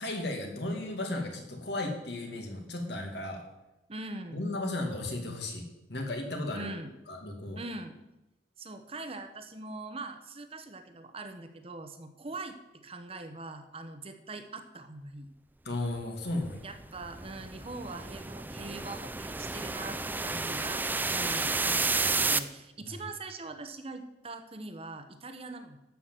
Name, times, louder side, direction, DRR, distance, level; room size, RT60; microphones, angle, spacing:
voice 1, 0.0-3.4 4.3-6.7 7.1-7.6 15.6-16.6 22.8-23.0, left 2 dB, 65° left, 2 dB, 2.4 m, -35 dB
voice 2, 3.9-4.4 6.5-6.9 7.6-8.0 8.6-15.3 16.6-25.8, right 2 dB, 30° right, 7 dB, 0.9 m, -42 dB
sound 1, 16.4-22.4, right 3 dB, 10° right, 0.4 m, -31 dB
13.0 x 5.9 x 7.5 m, 0.97 s
head